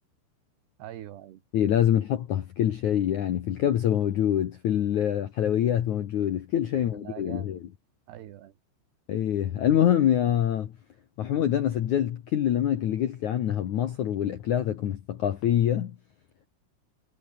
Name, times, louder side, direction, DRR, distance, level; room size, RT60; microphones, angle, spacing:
voice 1, 0.8-1.4 6.7-7.6 8.1-8.5, right 12 dB, 65° right, 3.6 m, -43 dB
voice 2, 1.5-7.6 9.1-10.7 11.2-16.0, left 10 dB, 70° left, 1.9 m, -25 dB
omnidirectional pair, 5.4 m